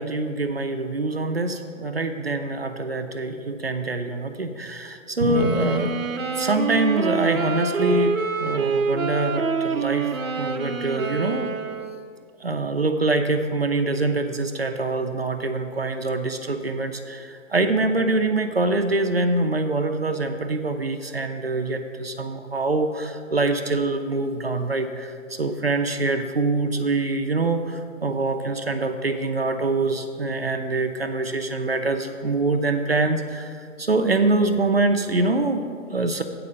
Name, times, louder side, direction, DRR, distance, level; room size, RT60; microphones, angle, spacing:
voice 1, 0.0-5.9 6.4-10.1 10.4-11.5 12.4-25.1 25.4-33.5 33.8-36.2, right 2 dB, 50° right, 6 dB, 0.5 m, -24 dB
Drum, 5.2-7.2, left 1 dB, 40° left, 1.9 m, -30 dB
sound 1, 5.2-12.1, right 5 dB, 85° right, 0.8 m, -26 dB
8.6 x 4.8 x 6.5 m, 2.2 s
hypercardioid pair, 180°, 41 cm